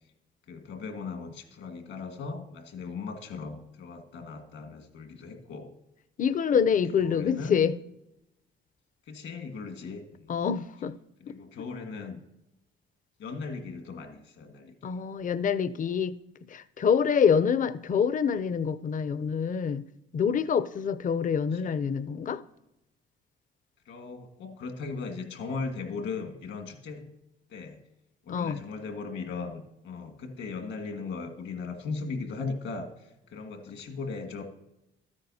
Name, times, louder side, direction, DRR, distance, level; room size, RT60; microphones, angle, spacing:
voice 1, 0.5-5.7 7.0-7.6 9.1-10.3 11.2-12.2 13.2-14.9 21.6-21.8 23.9-27.1 27.5-27.8 28.2-34.4, left 4 dB, 75° left, 1.7 m, -38 dB
voice 2, 6.2-7.8 10.3-10.9 11.3-11.4 14.8-16.2 16.5-19.8 20.1-22.4 28.3-28.6, left 7 dB, 40° left, 0.5 m, -26 dB
13.0 x 9.7 x 2.8 m
cardioid pair, 90°, 20 cm